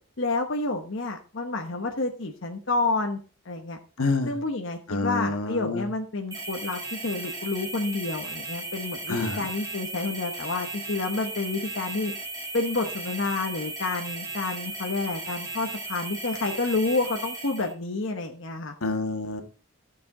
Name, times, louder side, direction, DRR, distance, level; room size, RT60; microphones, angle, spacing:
voice 1, 0.2-3.2 3.5-3.8 4.2-12.1 12.5-18.7, left 3 dB, 60° left, 3 dB, 1.0 m, -29 dB
voice 2, 4.0-4.3 4.9-5.8 9.1-9.5 18.8-19.4, left 3 dB, 90° left, 5 dB, 1.6 m, -27 dB
sound 1, 6.3-17.7, right 2 dB, 15° right, 2.8 m, -36 dB
12.5 x 6.9 x 3.8 m, 0.38 s
head